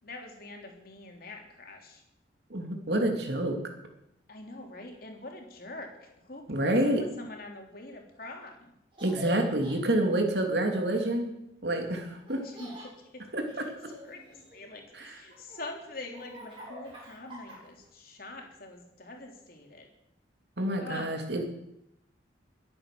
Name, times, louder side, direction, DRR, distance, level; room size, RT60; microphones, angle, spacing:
voice 1, 0.0-2.0 4.3-8.7 12.4-13.2 14.0-19.9 20.8-21.1, left 2 dB, 50° left, 2 dB, 3.3 m, -44 dB
voice 2, 2.5-3.6 6.5-7.0 9.0-11.3 11.6-12.4 13.3-13.7 14.9-15.2 20.6-21.4, right 1 dB, 60° right, 3 dB, 2.9 m, -28 dB
Laughter, 8.9-9.8 12.3-12.9 13.5-14.7 15.3-17.9, left 1 dB, 30° right, 7.5 m, -45 dB
22.5 x 8.8 x 6.9 m, 0.84 s
head